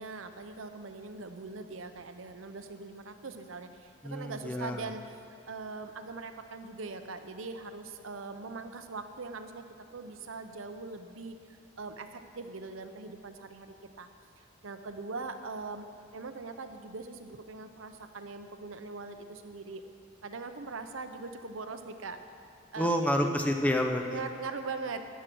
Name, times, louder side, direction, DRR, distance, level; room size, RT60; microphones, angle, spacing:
voice 1, 0.0-5.0 5.5-9.7 9.9-14.1 14.6-15.9 16.1-19.8 20.2-22.2 22.7-22.9 24.1-25.0, right 3 dB, 85° right, 7 dB, 0.8 m, -41 dB
voice 2, 4.0-4.9 22.8-24.2, equal, 5° left, 3 dB, 0.6 m, -29 dB
13.0 x 9.4 x 6.2 m, 2.5 s
head